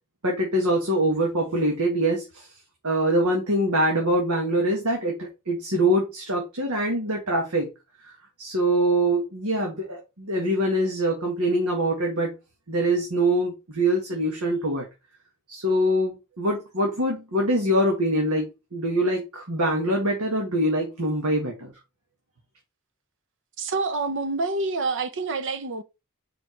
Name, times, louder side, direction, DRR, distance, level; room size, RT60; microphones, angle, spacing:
voice 1, 0.2-2.5 2.8-7.7 8.4-12.3 12.7-14.9 15.5-21.7, right 1 dB, 75° right, 1.9 m, -24 dB
voice 2, 23.6-25.8, right 3 dB, 60° right, 0.8 m, -27 dB
5.1 x 5.0 x 4.6 m
head